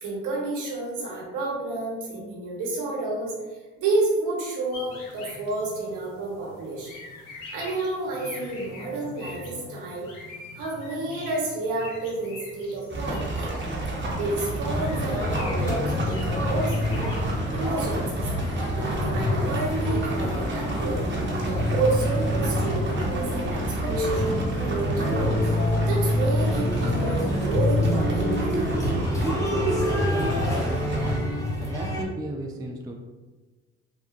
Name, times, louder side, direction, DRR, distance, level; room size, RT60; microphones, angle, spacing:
voice 1, 0.0-3.3 3.8-7.0 7.3-10.1 10.5-13.5 14.2-17.1 17.5-18.2 18.7-21.0 21.5-24.4 24.7-28.9 30.2-30.3, right 2 dB, 65° right, -3 dB, 1.2 m, -30 dB
sound 1, 4.7-17.2, left 2 dB, 65° left, 0.8 m, -40 dB
sound 2, 12.9-31.2, right 1 dB, 35° right, 1.0 m, -31 dB
sound 3, 14.7-32.0, left 1 dB, 10° left, 1.1 m, -27 dB
voice 2, 30.0-31.3 31.6-32.9, right 1 dB, 10° right, 3 dB, 0.3 m, -35 dB
3.6 x 2.3 x 2.5 m, 1.2 s
hypercardioid pair, 50°, 33 cm